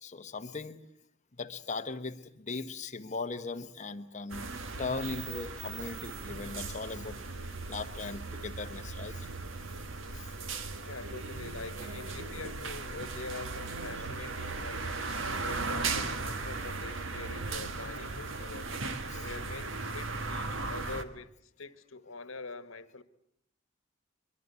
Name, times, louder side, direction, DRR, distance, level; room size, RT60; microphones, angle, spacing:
voice 1, 0.0-0.8 1.4-4.5 4.8-7.2 7.7-9.3 10.1-10.2 19.1-19.2, left 3 dB, 35° left, 8 dB, 1.2 m, -38 dB
sound 1, 4.3-21.0, right 3 dB, 65° right, 1.6 m, -37 dB
voice 2, 10.8-15.0 15.4-18.7 19.1-23.0, left 3 dB, 80° left, 13 dB, 1.4 m, -45 dB
23.5 x 23.0 x 8.3 m, 0.73 s
head